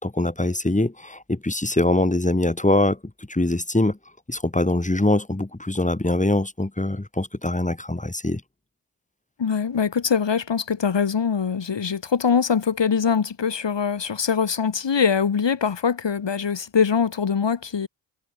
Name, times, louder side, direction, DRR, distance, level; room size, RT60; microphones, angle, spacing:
voice 1, 0.0-4.0 4.3-8.4, left 1 dB, 15° left, 5.7 m, -23 dB
voice 2, 9.4-17.9, left 6 dB, 70° left, 5.3 m, -23 dB
cardioid pair, 60°, 45 cm